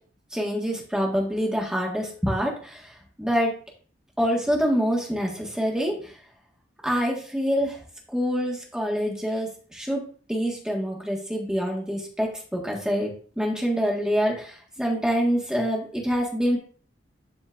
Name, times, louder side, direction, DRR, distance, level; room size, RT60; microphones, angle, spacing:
voice 1, 0.3-3.5 4.2-6.2 6.8-7.8 8.1-16.6, equal, 5° right, -1 dB, 1.6 m, -26 dB
12.0 x 4.3 x 2.5 m, 0.43 s
head